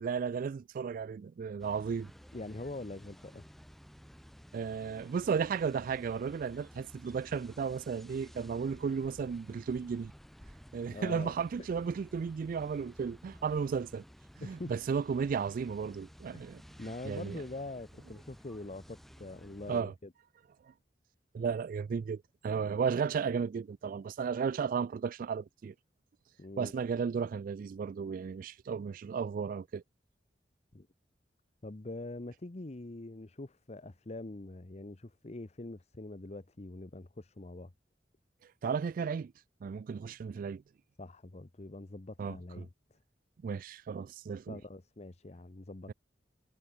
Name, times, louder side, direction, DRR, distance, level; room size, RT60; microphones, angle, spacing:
voice 1, 0.0-2.1 4.5-10.1 10.7-14.0 14.4-16.6 17.1-17.4 19.7-19.9 21.3-25.7 26.6-29.8 38.6-39.3 39.6-40.6 42.2-42.4 43.4-44.6 45.9-46.0, right 6 dB, 50° right, 0.3 m, -34 dB
sound 1, 1.6-19.8, equal, ahead, 2.5 m, -54 dB
voice 2, 2.3-3.4 10.9-11.3 14.4-14.7 16.3-16.4 16.8-20.1 26.4-26.7 30.7-30.9 31.6-37.7 41.0-42.7 44.5-45.9, left 2 dB, 40° left, 0.9 m, -44 dB
head